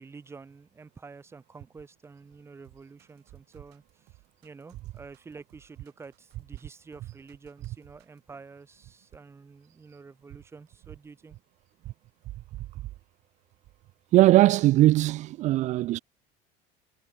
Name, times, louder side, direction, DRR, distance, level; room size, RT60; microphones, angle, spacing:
voice 1, 0.0-4.1 4.4-11.4, right 4 dB, 15° right, 1.8 m, -48 dB
sound 1, 2.6-8.3, right 24 dB, 65° right, 7.6 m, -60 dB
voice 2, 14.1-16.0, right 16 dB, 45° right, 0.6 m, -20 dB
cardioid pair, 160°, 18 cm